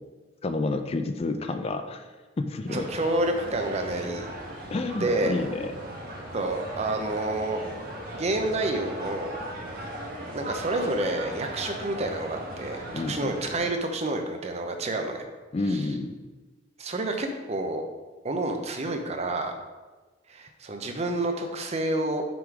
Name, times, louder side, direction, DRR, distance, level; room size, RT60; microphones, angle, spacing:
voice 1, 0.4-2.1 2.4-2.9 4.7-5.7 12.9-13.4 15.5-16.1, left 2 dB, 35° left, 7 dB, 0.4 m, -29 dB
voice 2, 2.7-4.3 4.9-5.3 6.3-7.6 8.1-9.4 9.7-9.9 10.3-15.2 15.7-15.9 16.8-17.8 18.2-19.5 20.3-22.2, right 2 dB, 35° right, 5 dB, 0.6 m, -29 dB
sound 1, 2.7-13.6, right 1 dB, 55° right, 1.1 m, -38 dB
6.0 x 3.7 x 4.7 m, 1.2 s
head